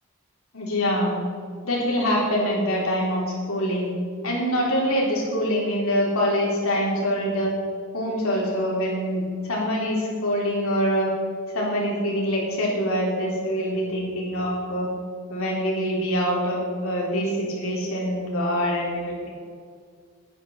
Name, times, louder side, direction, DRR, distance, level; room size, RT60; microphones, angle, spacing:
voice 1, 0.5-1.2 1.6-3.2 3.5-3.9 4.2-7.5 7.9-11.1 11.5-14.9 15.3-19.3, equal, 75° left, -3 dB, 3.7 m, -24 dB
10.5 x 9.8 x 6.6 m, 2.1 s
head